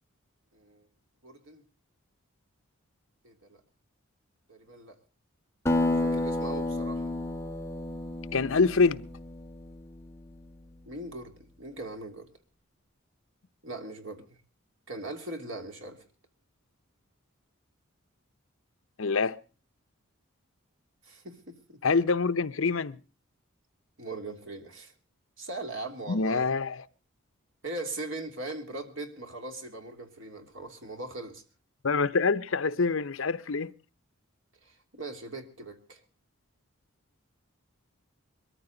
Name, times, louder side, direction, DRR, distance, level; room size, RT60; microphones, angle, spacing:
voice 1, 0.5-0.9 1.2-1.6 3.2-3.6 4.5-5.0 6.0-7.1 10.9-12.3 13.6-14.4 14.9-16.1 21.0-21.8 24.0-24.9 25.4-26.5 27.6-31.4 34.6-36.0, right 2 dB, 60° right, 2.8 m, -40 dB
Acoustic guitar, 5.7-10.5, left 1 dB, 10° left, 1.4 m, -31 dB
voice 2, 8.3-9.0 19.0-19.4 21.8-23.0 26.1-26.8 31.8-33.7, left 4 dB, 65° left, 0.7 m, -25 dB
22.0 x 14.0 x 3.9 m
head